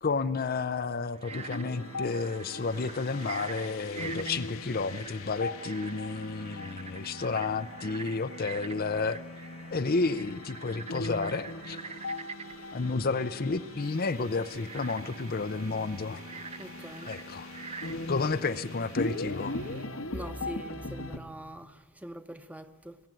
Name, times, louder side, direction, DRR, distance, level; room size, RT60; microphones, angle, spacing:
voice 1, 0.0-9.2 9.7-11.8 12.7-16.2 17.0-17.5 18.1-19.5, left 4 dB, 45° left, 0.6 m, -31 dB
Frog, 1.1-19.8, right 5 dB, 30° right, 0.6 m, -46 dB
sound 1, 1.3-21.2, left 2 dB, 75° left, 1.5 m, -40 dB
sound 2, 13.8-20.6, right 6 dB, 90° right, 2.7 m, -55 dB
voice 2, 16.6-17.1 20.1-23.0, equal, 5° right, 1.0 m, -43 dB
23.0 x 15.0 x 9.1 m
head